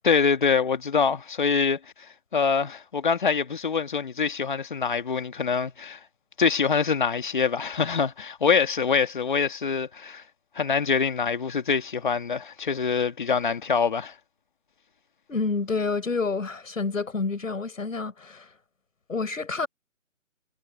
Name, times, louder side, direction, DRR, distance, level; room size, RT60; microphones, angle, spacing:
voice 1, 0.0-1.8 2.3-6.0 6.4-10.2 10.6-14.1, left 6 dB, 40° left, 2.1 m, -24 dB
voice 2, 15.3-18.5 19.1-19.7, left 4 dB, 80° left, 7.8 m, -28 dB
hypercardioid pair, 175°, 39 cm